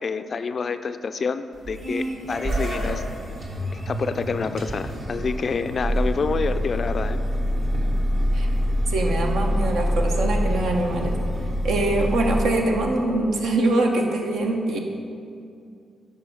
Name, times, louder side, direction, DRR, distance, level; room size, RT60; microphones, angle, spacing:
voice 1, 0.0-3.0 3.7-7.2, left 5 dB, 55° left, 11 dB, 0.3 m, -28 dB
sound 1, 1.5-12.4, equal, 55° right, 1.3 m, -26 dB
voice 2, 8.9-11.1 11.6-14.8, right 2 dB, 75° right, 2 dB, 0.7 m, -23 dB
10.5 x 4.3 x 3.5 m, 2.5 s
hypercardioid pair, 40°, 0 cm